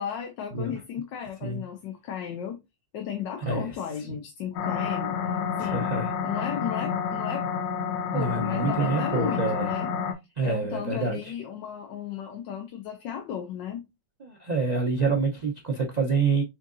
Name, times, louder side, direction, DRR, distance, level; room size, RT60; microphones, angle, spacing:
voice 1, 0.0-2.6 2.9-5.2 5.6-5.9 6.2-7.5 8.1-9.9 10.4-13.8, left 8 dB, 85° left, 1.4 m, -35 dB
voice 2, 3.4-3.8 5.6-6.1 8.1-9.7 10.4-11.3 14.2-16.4, right 4 dB, 65° right, 0.4 m, -27 dB
sound 1, 4.5-10.1, left 6 dB, 70° left, 1.2 m, -29 dB
4.4 x 3.6 x 2.5 m
omnidirectional pair, 1.9 m